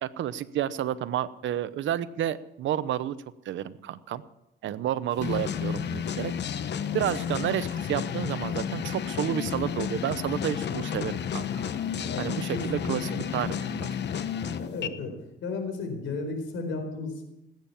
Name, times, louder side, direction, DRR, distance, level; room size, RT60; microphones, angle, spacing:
voice 1, 0.0-3.1 3.4-4.2 4.6-6.6 6.9-11.6 12.2-13.9, right 11 dB, 75° right, 15 dB, 0.9 m, -30 dB
sound 1, 5.2-14.9, left 8 dB, 60° left, 1.0 m, -31 dB
voice 2, 12.5-13.2 14.5-15.1 15.4-17.2, left 3 dB, 75° left, 5 dB, 4.4 m, -34 dB
19.0 x 9.1 x 7.1 m, 0.91 s
cardioid pair, 90°, 20 cm